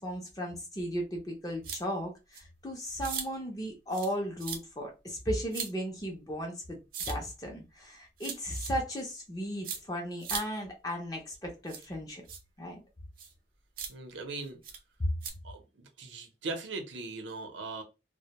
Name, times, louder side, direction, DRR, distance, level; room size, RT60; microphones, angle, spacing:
voice 1, 0.0-6.8 7.1-12.2 12.6-12.8 15.0-15.2, equal, 20° left, 0.5 m, -35 dB
sound 1, 1.6-1.8 2.3-2.4 3.0-3.3 3.9-4.1 4.4-4.6 5.5-5.7 6.9-7.1 8.2-8.7 9.6-9.8 10.2-10.4 11.7-11.9 12.3-12.4 13.2-13.3 13.8-13.9 14.6-14.8 15.2-15.3, right 6 dB, 50° right, 0.5 m, -37 dB
voice 2, 13.9-14.6 15.4-17.8, right 3 dB, 90° right, 0.7 m, -39 dB
2.1 x 2.1 x 2.8 m
head